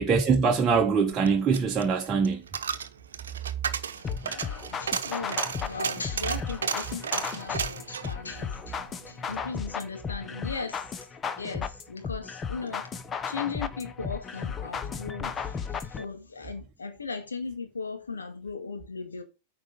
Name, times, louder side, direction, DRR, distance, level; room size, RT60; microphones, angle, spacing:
voice 1, 0.0-2.4 4.1-4.2, right 5 dB, 25° right, 1.2 m, -23 dB
Coin (dropping), 1.0-9.5 9.8-9.9, right 7 dB, 75° right, 0.9 m, -34 dB
voice 2, 4.0-11.1 11.4-12.9 13.3-19.2, left 4 dB, 85° left, 2.2 m, -38 dB
sound 1, 4.0-16.0, left 6 dB, 20° left, 0.9 m, -35 dB
9.0 x 5.0 x 5.4 m
figure-of-eight pair, 100°, 0 cm